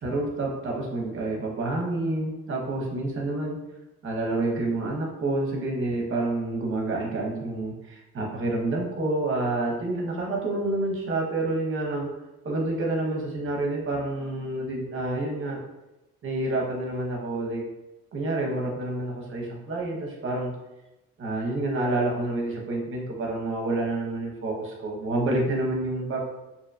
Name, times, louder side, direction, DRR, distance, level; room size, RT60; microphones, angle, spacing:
voice 1, 0.0-3.6 4.0-12.1 12.4-15.6 16.2-17.6 18.1-20.5 21.2-26.2, right 2 dB, 40° right, -1 dB, 0.7 m, -28 dB
2.6 x 2.1 x 2.5 m, 0.96 s
cardioid pair, 105°, 31 cm